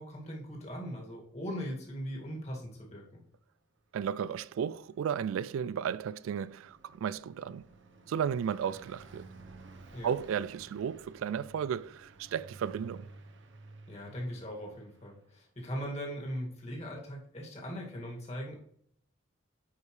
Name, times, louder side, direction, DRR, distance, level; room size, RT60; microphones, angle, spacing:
voice 1, 0.0-3.2 9.9-10.1 13.9-18.6, equal, 30° left, 2.1 m, -40 dB
voice 2, 3.9-7.7 8.1-9.3 10.0-13.1, right 8 dB, 85° right, 0.3 m, -34 dB
Car passing by, 4.5-15.3, right 3 dB, 65° right, 0.9 m, -54 dB
9.6 x 5.2 x 3.2 m
head